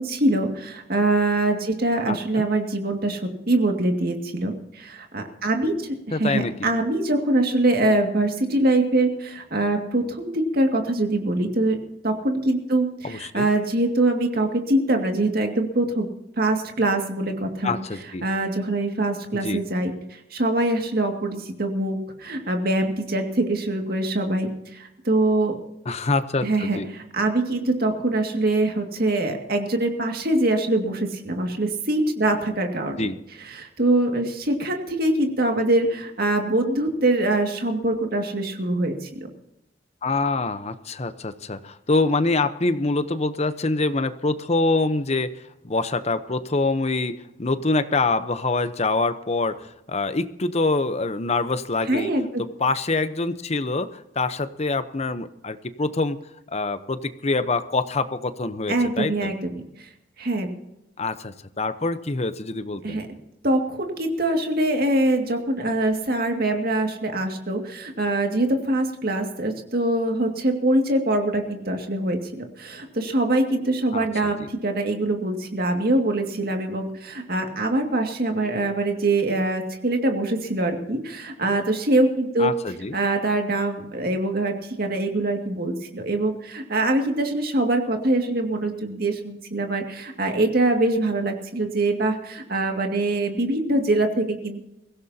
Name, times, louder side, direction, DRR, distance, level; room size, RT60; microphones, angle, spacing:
voice 1, 0.0-3.2 3.5-11.8 12.0-16.1 16.4-17.7 18.2-25.6 26.4-33.0 33.4-39.1 51.9-52.4 58.7-59.5 59.8-59.9 60.2-60.5 62.8-63.1 63.4-82.5 82.9-94.6, right 2 dB, 55° right, 3 dB, 2.2 m, -23 dB
voice 2, 2.1-2.5 6.1-6.5 13.0-13.5 17.6-18.3 19.3-19.6 25.9-26.9 33.0-33.2 40.0-45.3 45.6-52.1 52.4-56.2 56.5-59.3 61.0-63.0 73.9-74.1 74.4-74.5 82.4-83.0, left 3 dB, 35° left, 11 dB, 0.9 m, -25 dB
23.5 x 16.5 x 2.9 m, 0.87 s
head